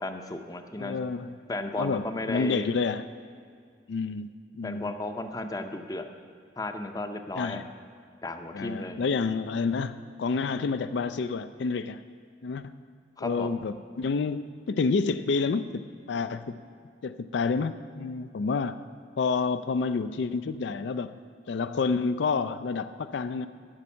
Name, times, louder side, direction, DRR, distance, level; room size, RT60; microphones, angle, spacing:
voice 1, 0.0-1.0 1.5-2.7 4.6-6.1 6.6-7.6 8.2-9.0 13.2-13.5, left 2 dB, 20° left, 7 dB, 0.6 m, -34 dB
voice 2, 0.8-1.4 1.8-3.1 3.9-4.9 7.4-7.7 8.5-12.0 12.4-12.8 13.2-16.6 17.0-18.8 19.2-21.2 21.5-23.5, left 4 dB, 75° left, 12 dB, 0.4 m, -29 dB
11.5 x 6.2 x 8.4 m, 2.1 s
head